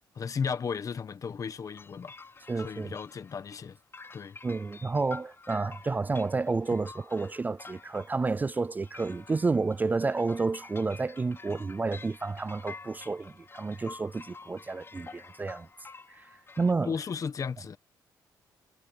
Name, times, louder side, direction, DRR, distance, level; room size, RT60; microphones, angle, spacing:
voice 1, 0.1-3.8 4.1-4.4 16.8-17.8, left 6 dB, 50° left, 1.4 m, -35 dB
sound 1, 1.7-16.7, left 4 dB, 30° left, 5.2 m, -49 dB
voice 2, 2.5-2.9 4.4-15.7 16.1-16.3 16.6-16.9, right 3 dB, 25° right, 0.4 m, -30 dB
cardioid pair, 90°, 8 cm